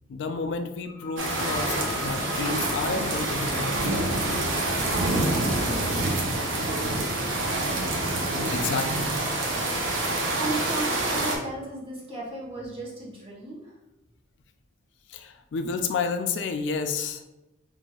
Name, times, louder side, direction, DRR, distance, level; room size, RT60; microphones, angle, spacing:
voice 1, 0.1-3.9 6.6-6.7 7.3-7.4 8.5-9.1 15.1-17.2, left 4 dB, 75° left, 7 dB, 0.4 m, -30 dB
sound 1, 0.8-12.1, left 2 dB, 10° left, 1.0 m, -43 dB
sound 2, 1.2-11.4, right 2 dB, 85° right, 0.8 m, -27 dB
voice 2, 4.5-6.4 6.6-7.3 10.0-13.8, right 2 dB, 30° right, -4 dB, 0.9 m, -36 dB
5.6 x 2.5 x 2.3 m, 0.99 s
head